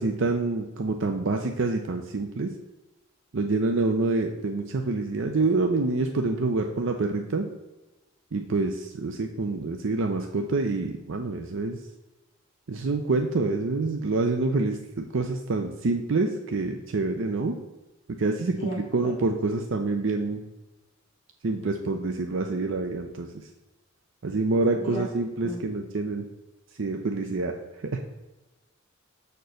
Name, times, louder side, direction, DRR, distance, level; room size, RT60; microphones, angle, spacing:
voice 1, 0.0-2.5 3.3-7.5 8.3-11.8 12.7-17.6 18.2-20.4 21.4-23.3 24.2-26.2 26.8-27.5 27.9-28.0, right 3 dB, 65° right, 4 dB, 0.6 m, -27 dB
voice 2, 18.6-19.1 24.7-25.1 25.4-25.6, equal, 30° left, -3 dB, 1.6 m, -34 dB
6.8 x 4.4 x 6.3 m, 1.1 s
head